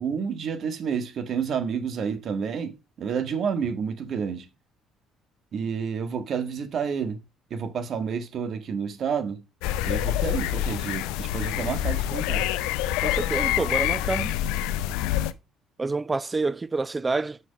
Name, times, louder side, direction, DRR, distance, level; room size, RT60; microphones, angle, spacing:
voice 1, 0.0-4.5 5.5-7.2 7.5-9.4 9.8-12.4, right 6 dB, 55° right, 1.6 m, -29 dB
sound 1, 9.6-15.3, left 12 dB, 80° left, 0.5 m, -26 dB
voice 2, 13.0-14.4 15.8-17.4, right 3 dB, 25° right, 0.5 m, -27 dB
6.1 x 5.7 x 5.2 m
supercardioid pair, 65°, 0 cm